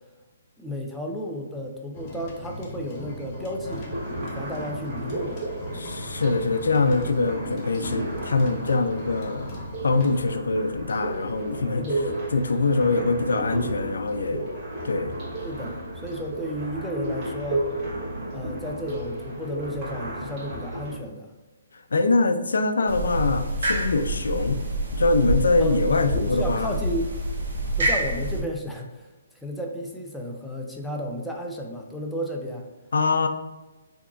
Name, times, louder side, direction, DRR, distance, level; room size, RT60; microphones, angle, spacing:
voice 1, 0.6-3.9 4.2-5.4 11.8-12.2 15.4-17.7 18.3-21.3 25.6-27.1 27.8-29.1 29.4-32.7, equal, 5° left, 0 dB, 0.4 m, -33 dB
sound 1, 1.9-10.2, left 1 dB, 35° left, 0.7 m, -39 dB
sound 2, 3.6-21.0, right 1 dB, 25° right, 1.3 m, -33 dB
voice 2, 5.7-9.5 9.8-11.9 12.3-14.4 14.8-15.1 21.7-24.6 24.9-26.8 32.9-33.3, left 3 dB, 85° left, 9 dB, 0.3 m, -23 dB
sound 3, 22.9-28.4, right 1 dB, 65° right, 0.9 m, -27 dB
3.4 x 2.9 x 2.5 m, 1.2 s
hypercardioid pair, 155°, 0 cm